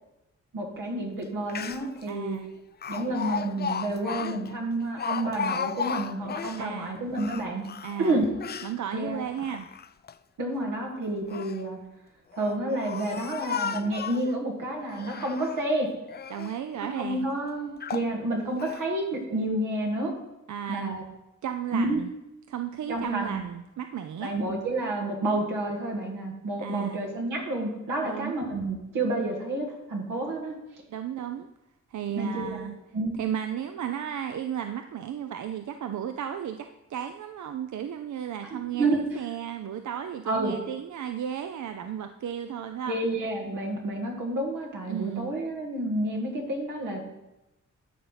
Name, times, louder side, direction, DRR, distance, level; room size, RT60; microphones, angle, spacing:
voice 1, 0.5-2.4 2.9-7.7 8.0-8.3 8.9-9.2 10.4-11.8 12.4-15.9 17.0-20.1 20.7-21.0 21.7-22.0 22.9-23.4 24.2-30.5 32.2-32.6 32.9-33.2 38.5-39.2 40.3-40.5 42.9-47.0, right 2 dB, 90° right, 0 dB, 2.0 m, -29 dB
Speech, 1.2-1.3 1.5-2.0 2.8-6.7 7.1-8.8 9.3-10.1 11.0-11.6 12.3-14.3 14.9-15.7 16.1-16.6 17.2-17.3 17.8-18.1 18.6-18.8, left 7 dB, 35° left, 0.4 m, -35 dB
voice 2, 2.1-2.5 6.6-7.0 7.8-8.2 8.6-9.7 16.3-17.3 20.5-20.9 21.4-22.1 22.5-24.3 26.6-27.0 28.0-28.4 30.9-31.5 31.9-32.8 33.2-43.0 44.9-45.3, right 9 dB, 70° right, 8 dB, 0.5 m, -34 dB
12.0 x 4.1 x 5.7 m, 0.94 s
cardioid pair, 60°, 31 cm